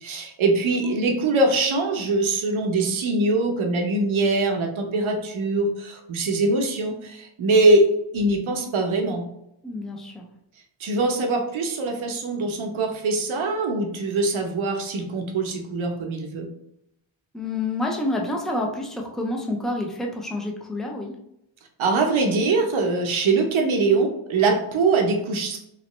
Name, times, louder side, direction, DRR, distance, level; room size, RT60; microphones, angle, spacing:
voice 1, 0.0-7.9 8.1-9.3 10.8-16.5 21.8-25.6, right 3 dB, 70° right, 3 dB, 0.8 m, -22 dB
voice 2, 9.6-10.2 17.3-21.2, left 2 dB, ahead, 1 dB, 0.4 m, -28 dB
3.1 x 3.0 x 3.0 m, 0.79 s
wide cardioid pair, 145°, 49 cm